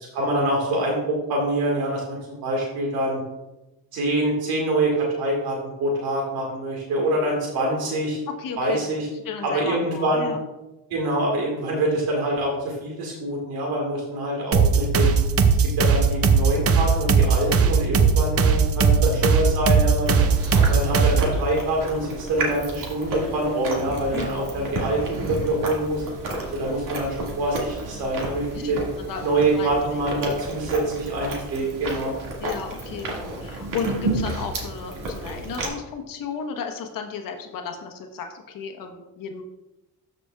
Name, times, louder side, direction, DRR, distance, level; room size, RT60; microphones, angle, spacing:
voice 1, 0.1-3.2 3.9-8.2 8.6-9.1 9.4-10.3 10.9-15.2 15.5-20.2 20.7-26.0 26.5-28.8 29.2-32.1, right 1 dB, 80° right, -2 dB, 1.9 m, -25 dB
voice 2, 8.4-8.8 9.1-10.4 24.1-24.5 28.5-28.7 29.0-29.2 29.5-30.0 32.4-33.1 33.4-39.4, left 6 dB, 65° left, 3 dB, 1.1 m, -34 dB
sound 1, 14.5-21.4, right 5 dB, 40° right, 0.7 m, -19 dB
Chewing mastication, 20.1-35.7, right 2 dB, 60° right, 2.1 m, -31 dB
13.0 x 5.1 x 2.4 m, 1.0 s
cardioid pair, 95°, 36 cm